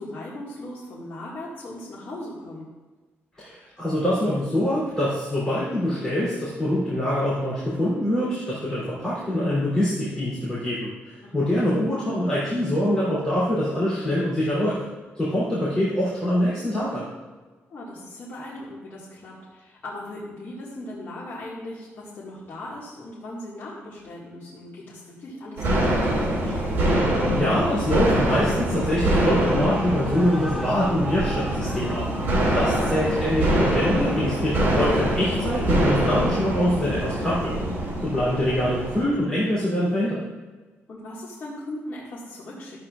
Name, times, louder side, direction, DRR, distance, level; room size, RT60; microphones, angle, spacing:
voice 1, 0.0-2.7 11.2-11.6 17.7-26.6 32.7-32.9 33.2-33.3 40.9-42.8, left 1 dB, 45° left, -8 dB, 1.9 m, -38 dB
voice 2, 3.4-14.8 15.1-17.1 27.0-40.2, left 1 dB, 15° left, -10 dB, 3.1 m, -24 dB
sound 1, 25.6-39.0, right 1 dB, 50° right, 2.6 m, -24 dB
Shout / Cheering, 28.7-34.1, right 1 dB, 5° right, 0.6 m, -37 dB
12.5 x 8.4 x 2.5 m, 1.3 s
cardioid pair, 155°, 5 cm